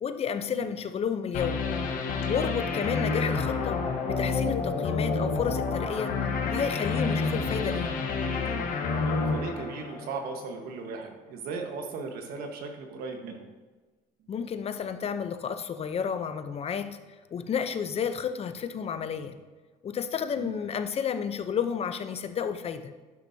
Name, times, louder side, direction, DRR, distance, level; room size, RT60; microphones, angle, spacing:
voice 1, 0.0-1.7 2.3-6.2 6.4-8.1 14.3-17.0 17.3-19.4 19.8-22.9, left 7 dB, 40° left, 10 dB, 0.6 m, -31 dB
sound 1, 1.3-10.4, left 4 dB, 60° left, 1.3 m, -29 dB
voice 2, 2.2-2.5 8.9-13.5 20.4-20.6, right 4 dB, 75° right, 4 dB, 1.3 m, -37 dB
11.0 x 6.1 x 2.7 m, 1.3 s
supercardioid pair, 90°, 16 cm